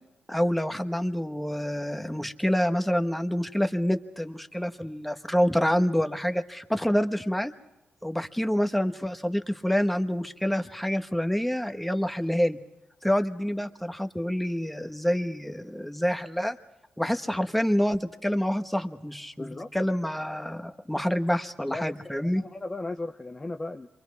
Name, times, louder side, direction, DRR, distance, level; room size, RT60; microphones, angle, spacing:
voice 1, 0.3-7.5 8.0-12.6 13.0-16.6 17.0-22.4, equal, 5° left, 7 dB, 1.2 m, -27 dB
voice 2, 19.4-19.9 21.7-23.9, left 2 dB, 20° left, 5 dB, 0.8 m, -36 dB
27.5 x 23.5 x 4.7 m, 0.90 s
cardioid pair, 110°, 3 cm